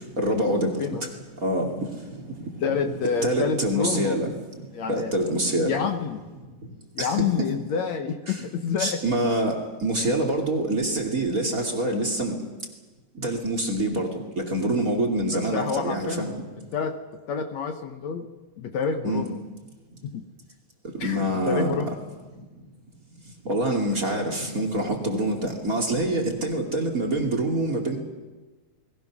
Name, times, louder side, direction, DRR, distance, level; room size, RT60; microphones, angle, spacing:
voice 1, 0.2-1.1 1.4-1.9 2.1-2.4 3.2-4.3 4.9-5.8 7.0-7.1 7.4-7.5 8.3-8.4 8.8-12.4 13.2-14.1 14.4-16.3 19.0-19.2 20.9-21.7 23.4-28.0, right 1 dB, 25° right, 4 dB, 2.9 m, -25 dB
voice 2, 2.6-4.2 4.7-5.1 5.7-6.2 7.0-9.0 15.5-16.3 16.7-17.0 17.3-18.3 18.6-19.4 20.1-20.2 21.0-21.9, left 6 dB, 65° left, 6 dB, 2.2 m, -28 dB
29.5 x 21.0 x 6.2 m, 1.2 s
omnidirectional pair, 3.7 m